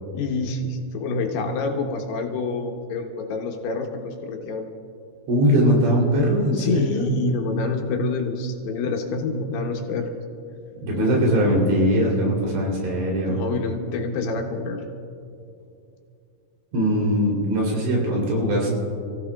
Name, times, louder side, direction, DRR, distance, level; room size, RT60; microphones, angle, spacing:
voice 1, 0.1-4.6 6.5-10.1 10.9-11.2 13.2-14.8, left 3 dB, 75° left, 2 dB, 3.1 m, -27 dB
voice 2, 5.3-7.1 10.8-13.4 16.7-18.7, equal, 90° right, -2 dB, 5.5 m, -21 dB
29.0 x 15.5 x 2.4 m, 2.6 s
omnidirectional pair, 4.9 m